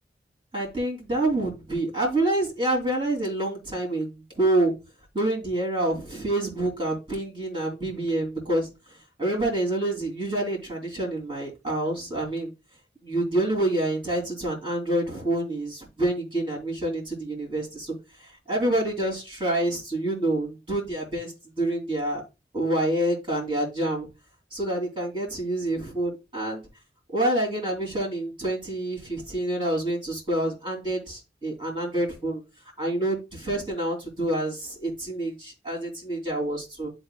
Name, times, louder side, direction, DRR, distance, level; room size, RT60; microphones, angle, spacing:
voice 1, 0.5-4.7 5.1-8.7 9.2-12.5 13.0-17.9 18.5-21.3 21.6-22.2 22.5-24.1 24.5-26.6 27.1-32.4 32.8-36.9, right 1 dB, 30° right, -2 dB, 2.9 m, -27 dB
11.0 x 4.1 x 2.2 m, 0.26 s
head